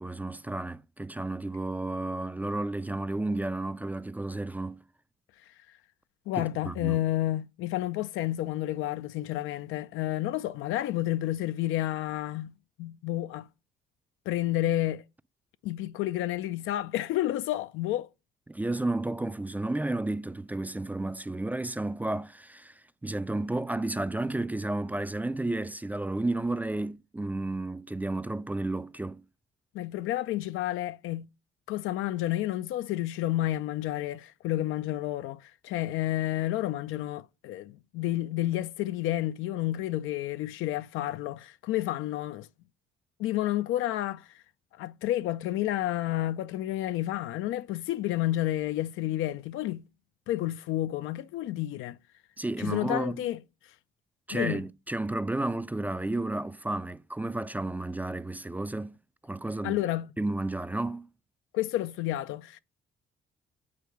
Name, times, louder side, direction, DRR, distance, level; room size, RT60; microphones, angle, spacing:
voice 1, 0.0-4.8 6.4-7.0 18.5-29.2 52.4-53.2 54.3-59.0 59.2-59.8 60.2-61.1, right 2 dB, 10° right, 0.3 m, -32 dB
voice 2, 6.3-12.5 12.8-13.5 14.3-15.0 15.6-18.1 29.7-31.3 31.7-42.5 43.2-44.4 44.8-49.8 50.3-52.0 52.6-53.4 54.3-54.6 59.6-60.1 61.5-62.6, left 14 dB, 90° left, 0.4 m, -30 dB
8.6 x 4.5 x 4.7 m
cardioid pair, 90°, 20 cm